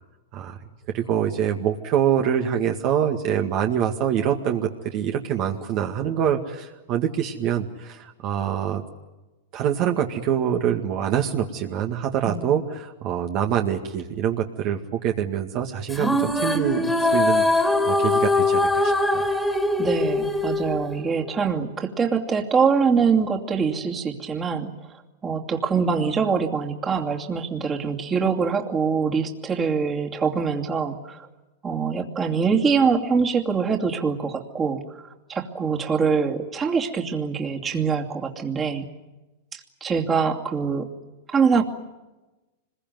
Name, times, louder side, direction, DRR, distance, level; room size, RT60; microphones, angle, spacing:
voice 1, 0.9-8.8 9.5-19.3, right 9 dB, 45° right, 3 dB, 2.0 m, -25 dB
sound 1, 15.9-21.4, left 2 dB, 5° left, 2.6 m, -22 dB
voice 2, 19.8-24.7 25.2-31.3 31.6-35.0 35.3-38.9 39.5-40.9 41.3-41.6, right 5 dB, 20° right, 2 dB, 2.6 m, -24 dB
25.5 x 21.5 x 9.4 m, 1.1 s
hypercardioid pair, 125°, 0 cm